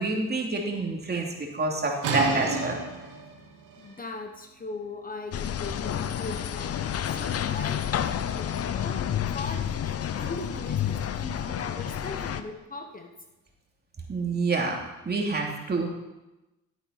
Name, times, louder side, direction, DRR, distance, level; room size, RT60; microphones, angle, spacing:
voice 1, 0.0-2.8 14.1-14.8 15.0-15.9, right 3 dB, 35° right, 0 dB, 2.8 m, -27 dB
sound 1, 2.0-7.6, right 3 dB, 90° right, 2.7 m, -35 dB
voice 2, 3.8-13.1, left 3 dB, 30° left, 5 dB, 1.2 m, -39 dB
sound 2, 5.3-12.4, left 9 dB, 50° left, 0.8 m, -30 dB
12.5 x 8.2 x 5.8 m, 1.0 s
cardioid pair, 90°, 30 cm